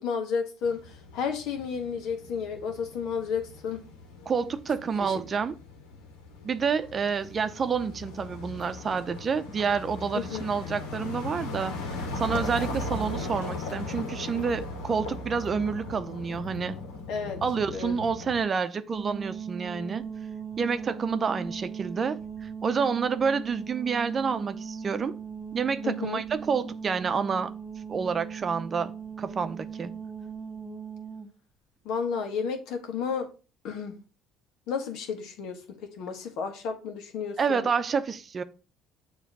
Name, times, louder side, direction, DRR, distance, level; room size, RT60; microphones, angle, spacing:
voice 1, 0.0-3.8 5.0-5.1 10.1-10.5 17.1-17.4 17.7-17.9 25.8-26.2 31.8-33.3 33.6-34.0 34.7-37.7, left 6 dB, 70° left, 1.5 m, -32 dB
sound 1, 0.6-18.4, left 2 dB, 90° left, 1.6 m, -38 dB
voice 2, 4.3-5.5 6.4-11.8 12.2-16.8 17.4-20.1 20.6-25.1 25.5-27.5 27.9-29.9 37.4-38.4, right 5 dB, 40° right, 0.7 m, -28 dB
sound 2, 18.9-31.3, right 6 dB, 15° right, 1.5 m, -39 dB
6.9 x 3.1 x 6.0 m
supercardioid pair, 75°, 0 cm